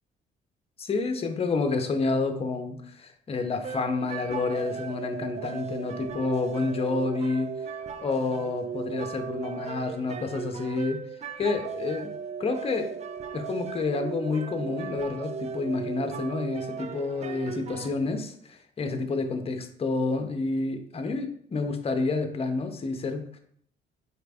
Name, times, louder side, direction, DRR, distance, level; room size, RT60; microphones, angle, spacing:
voice 1, 0.8-7.5 8.0-11.0 11.4-12.1 12.4-12.9 13.3-23.4, left 3 dB, 30° left, 6 dB, 0.6 m, -29 dB
sound 1, 3.6-17.9, right 6 dB, 35° right, 0.3 m, -37 dB
4.1 x 2.5 x 3.4 m, 0.63 s
cardioid pair, 90°, 20 cm